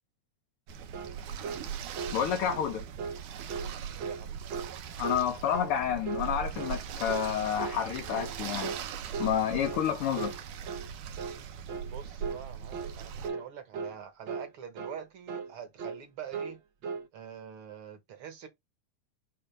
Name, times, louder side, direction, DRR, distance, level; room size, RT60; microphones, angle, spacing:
sound 1, 0.7-13.3, right 8 dB, 90° right, 2.5 m, -40 dB
sound 2, 0.9-1.2 1.4-1.6 1.9-2.2 2.5-2.7 3.0-3.2 3.5-3.7 4.0-4.2 4.5-4.7 5.0-5.3 5.5-5.8 6.0-6.3 6.6-6.8 7.1-7.3 7.6-7.8 8.1-8.3 8.6-8.8 9.1-9.4 9.6-9.9 10.1-10.4 10.7-10.9 11.2-11.4 11.7-11.9 12.2-12.4 12.7-13.0 13.2-13.5 13.7-14.0 14.3-14.5 14.8-15.0 15.3-15.5 15.8-16.0 16.3-16.6 16.8-17.1, right 5 dB, 75° right, 1.1 m, -37 dB
voice 1, 2.1-2.8 5.0-8.7 9.2-10.4, left 9 dB, 70° left, 1.4 m, -29 dB
voice 2, 3.9-4.4 11.9-16.6 17.1-18.5, right 8 dB, 55° right, 1.8 m, -45 dB
6.9 x 2.4 x 5.6 m
omnidirectional pair, 3.5 m